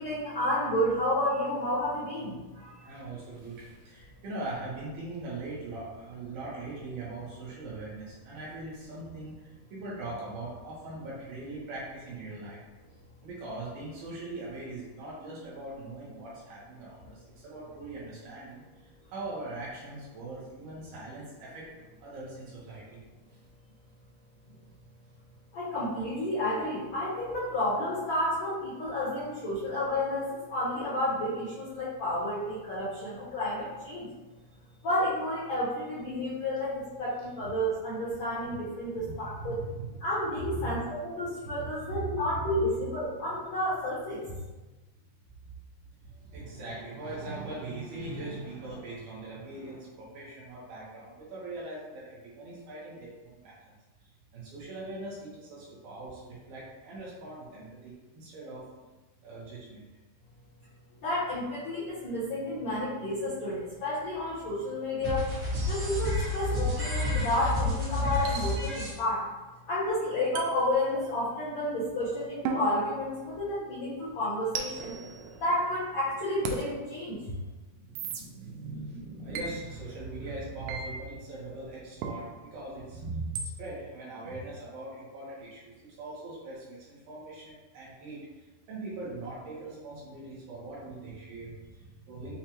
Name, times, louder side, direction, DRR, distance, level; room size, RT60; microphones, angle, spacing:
voice 1, 0.0-2.8 25.5-34.1 34.8-39.6 40.0-44.2 61.0-65.3 65.7-69.2 69.7-74.9 75.4-77.2, left 1 dB, 70° left, -11 dB, 1.7 m, -31 dB
voice 2, 2.8-12.6 13.2-18.6 19.1-21.7 22.0-23.0 38.4-38.5 38.9-40.8 41.6-43.0 46.2-53.6 54.3-58.6 59.2-59.8 77.1-77.2 77.8-85.6 86.0-88.2 88.7-92.4, right 2 dB, 75° right, -6 dB, 2.6 m, -40 dB
sound 1, 65.0-68.9, left 2 dB, 55° right, 1.7 m, -30 dB
sound 2, 66.4-66.6 68.3-69.0 70.4-71.4 72.5-73.7 74.5-75.9 76.5-76.6 78.0-78.2 79.3-79.5 80.7-80.9 82.0-82.2 83.4-83.5, right 5 dB, 90° right, 2.7 m, -37 dB
6.8 x 2.3 x 3.0 m, 1.2 s
omnidirectional pair, 4.7 m